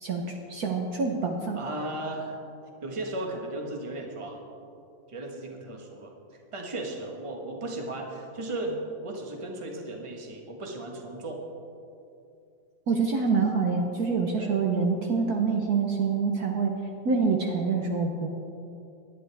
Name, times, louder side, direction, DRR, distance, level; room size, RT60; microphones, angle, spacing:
voice 1, 0.0-1.6 12.9-16.7 17.0-18.3, right 4 dB, 55° right, 1 dB, 1.3 m, -26 dB
voice 2, 1.5-2.4 2.8-4.4 5.1-8.8 9.0-11.4 14.4-14.5, right 2 dB, 20° right, 1 dB, 1.2 m, -36 dB
18.5 x 11.5 x 3.5 m, 2.7 s
omnidirectional pair, 2.1 m